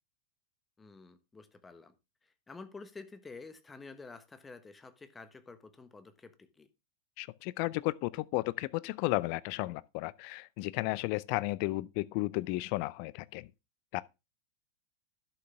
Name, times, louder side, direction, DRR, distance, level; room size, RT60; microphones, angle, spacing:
voice 1, 0.8-1.9 2.2-6.7, left 4 dB, 15° left, 1.2 m, -50 dB
voice 2, 7.2-13.5 13.9-14.0, left 21 dB, 45° left, 0.5 m, -33 dB
11.5 x 6.6 x 3.4 m
figure-of-eight pair, 90°, 0 cm